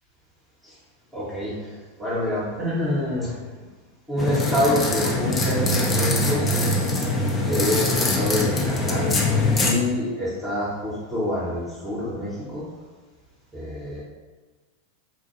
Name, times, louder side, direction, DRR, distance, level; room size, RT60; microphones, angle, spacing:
voice 1, 1.1-3.4 4.1-6.8 7.4-9.2 9.6-12.6 13.5-14.0, left 1 dB, 10° right, -9 dB, 1.0 m, -27 dB
sound 1, 4.2-9.7, left 2 dB, 15° left, 0.6 m, -23 dB
4.0 x 2.2 x 3.0 m, 1.2 s
figure-of-eight pair, 90°, 0 cm